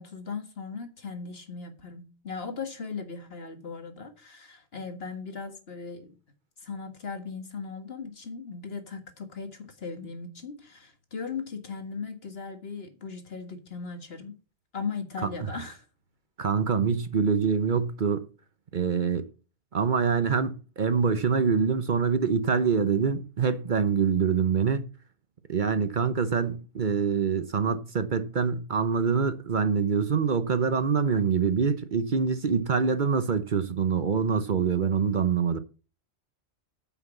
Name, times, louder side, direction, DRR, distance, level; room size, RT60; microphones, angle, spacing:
voice 1, 0.0-6.1 6.6-14.3 14.7-15.8, left 5 dB, 60° left, 2.0 m, -38 dB
voice 2, 16.4-18.3 18.7-19.3 19.7-24.9 25.5-35.6, right 6 dB, 50° right, 0.9 m, -25 dB
9.4 x 6.0 x 7.2 m
omnidirectional pair, 1.2 m